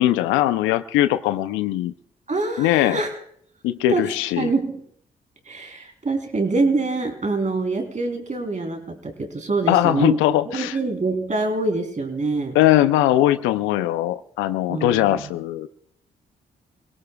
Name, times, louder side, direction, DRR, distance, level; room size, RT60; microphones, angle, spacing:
voice 1, 0.0-1.9 2.6-3.0 3.6-4.5 9.7-10.8 12.5-15.7, left 14 dB, 85° left, 12 dB, 0.6 m, -20 dB
voice 2, 2.3-3.2 3.9-4.8 5.5-10.2 10.5-12.6 14.7-15.3, right 3 dB, 40° right, 4 dB, 3.5 m, -25 dB
27.5 x 17.5 x 2.3 m, 0.67 s
hypercardioid pair, 45°, 20 cm